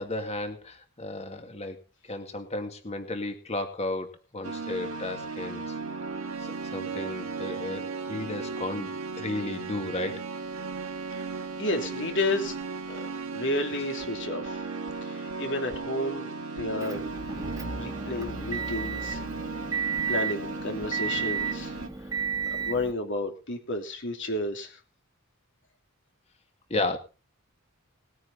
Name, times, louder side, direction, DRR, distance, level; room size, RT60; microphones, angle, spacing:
voice 1, 0.0-1.8 2.1-5.7 6.7-7.8 8.1-10.2 26.7-27.0, left 2 dB, 30° left, 6 dB, 2.3 m, -33 dB
sound 1, 4.4-21.9, right 4 dB, 75° right, 2.1 m, -36 dB
voice 2, 11.6-12.5 12.9-13.0 13.3-14.7 15.0-16.3 16.5-17.0 17.8-19.2 20.1-21.7 22.6-24.8, left 2 dB, 60° left, 4 dB, 3.0 m, -31 dB
Motor vehicle (road) / Engine, 16.8-22.9, right 5 dB, 15° right, 1.5 m, -33 dB
20.0 x 9.5 x 4.1 m, 0.33 s
head